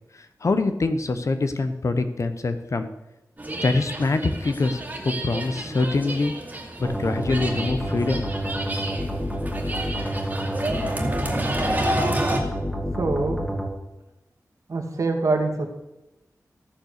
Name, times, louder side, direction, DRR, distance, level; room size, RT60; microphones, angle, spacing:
voice 1, 0.4-2.9 3.6-6.3 6.8-8.2 9.3-9.4, left 3 dB, 55° left, 9 dB, 1.0 m, -24 dB
sound 1, 3.4-12.4, right 1 dB, 25° right, 2.2 m, -30 dB
sound 2, 6.8-13.7, equal, 10° left, 2.2 m, -29 dB
voice 2, 13.0-13.5 14.7-15.7, right 3 dB, 60° right, 1 dB, 2.2 m, -24 dB
14.5 x 6.6 x 6.6 m, 0.96 s
wide cardioid pair, 115°, 6 cm